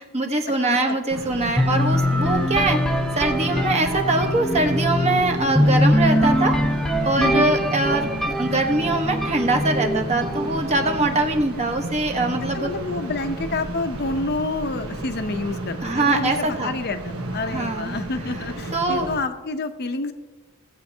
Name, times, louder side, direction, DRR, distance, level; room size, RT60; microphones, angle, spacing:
voice 1, 0.1-2.8 3.1-6.6 7.0-12.7 15.8-16.8 17.5-18.0 18.7-19.1, right 2 dB, 30° right, 3 dB, 1.0 m, -23 dB
sound 1, 1.1-19.2, right 2 dB, 70° right, 1.2 m, -33 dB
sound 2, 1.6-11.4, equal, ahead, 0.6 m, -23 dB
voice 2, 7.2-7.5 12.5-20.1, left 2 dB, 50° left, 8 dB, 0.7 m, -28 dB
17.0 x 8.3 x 2.8 m, 1.2 s
head